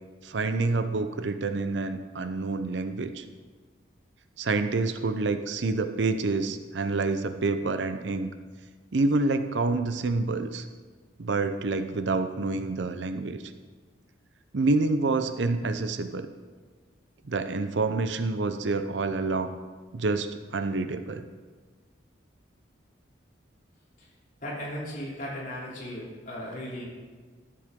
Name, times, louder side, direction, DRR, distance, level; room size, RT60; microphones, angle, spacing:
voice 1, 0.2-3.2 4.4-8.3 8.9-10.7 11.2-13.4 14.5-16.3 17.3-19.6 19.9-21.2, right 3 dB, 70° right, 9 dB, 0.6 m, -27 dB
voice 2, 24.4-26.8, equal, 45° left, -6 dB, 3.0 m, -36 dB
13.0 x 7.7 x 3.6 m, 1.4 s
head